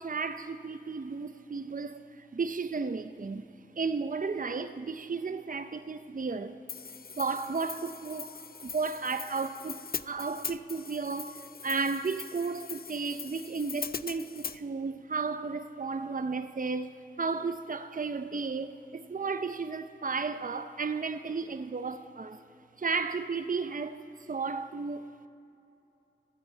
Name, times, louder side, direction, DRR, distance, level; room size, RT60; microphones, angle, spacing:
voice 1, 0.0-3.5 3.8-6.6 7.1-8.3 8.6-9.8 10.1-22.4 22.8-25.3, right 4 dB, 45° right, 0.5 m, -34 dB
Hi-hat, 6.7-14.6, left 5 dB, 55° left, 0.4 m, -41 dB
14.0 x 8.9 x 8.2 m
wide cardioid pair, 50°, 19 cm